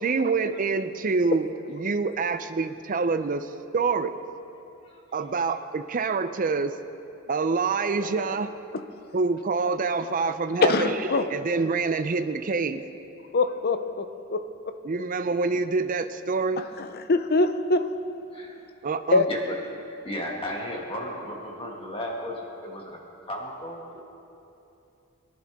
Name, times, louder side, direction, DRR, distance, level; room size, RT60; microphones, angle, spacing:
voice 1, 0.0-3.5 3.7-4.1 5.1-6.7 7.3-8.5 9.1-12.8 14.8-16.6 18.8-19.2, right 4 dB, 40° right, 10 dB, 0.5 m, -26 dB
voice 2, 10.6-11.2 13.3-14.4 16.6-17.8 19.1-19.3, left 3 dB, 45° left, 9 dB, 0.6 m, -23 dB
voice 3, 20.0-23.0 23.2-24.0, left 1 dB, 25° left, -1 dB, 1.9 m, -34 dB
22.5 x 11.0 x 3.6 m, 2.8 s
head